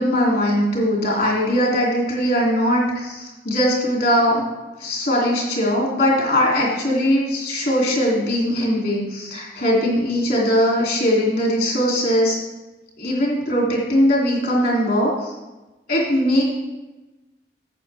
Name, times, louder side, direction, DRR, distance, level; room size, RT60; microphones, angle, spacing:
voice 1, 0.0-4.4 4.8-12.4 13.0-15.3 15.9-16.4, equal, 60° left, -3 dB, 3.1 m, -20 dB
11.5 x 8.1 x 3.5 m, 1.1 s
head